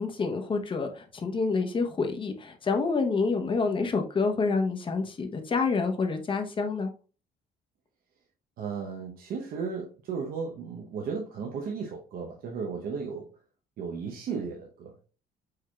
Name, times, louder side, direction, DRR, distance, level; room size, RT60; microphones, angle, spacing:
voice 1, 0.0-6.9, left 4 dB, 30° left, 5 dB, 0.9 m, -28 dB
voice 2, 8.6-13.3 13.8-15.1, right 5 dB, 60° right, 0 dB, 0.8 m, -35 dB
4.8 x 4.5 x 2.3 m, 0.36 s
cardioid pair, 110°, 17 cm